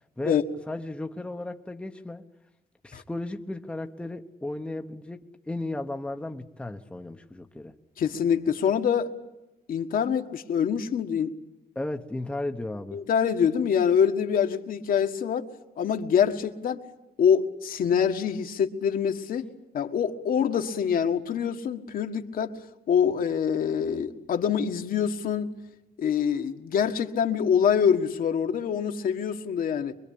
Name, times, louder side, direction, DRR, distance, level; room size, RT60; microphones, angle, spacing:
voice 1, 0.7-2.3 2.8-7.7 11.7-13.0, left 2 dB, 5° left, 0.9 m, -35 dB
voice 2, 8.0-9.1 9.7-11.3 12.9-15.5 15.8-16.8 17.2-19.5 19.7-22.6 22.9-25.5 26.0-30.0, left 7 dB, 65° left, 1.7 m, -25 dB
24.5 x 23.0 x 8.5 m
wide cardioid pair, 175°, 16 cm